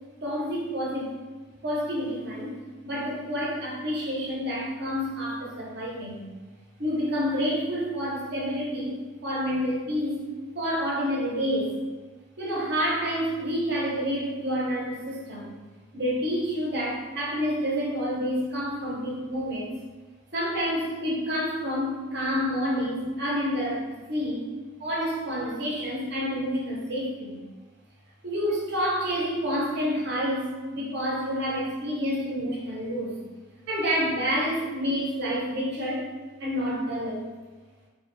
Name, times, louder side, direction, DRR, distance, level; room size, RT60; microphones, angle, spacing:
voice 1, 0.2-1.2 1.6-2.6 2.8-6.3 6.8-10.2 10.5-11.8 12.4-15.5 15.9-19.7 20.3-24.4 24.8-27.4 28.2-33.2 33.7-36.1 36.4-37.3, equal, 50° right, -4 dB, 0.7 m, -28 dB
2.2 x 2.1 x 3.1 m, 1.3 s
head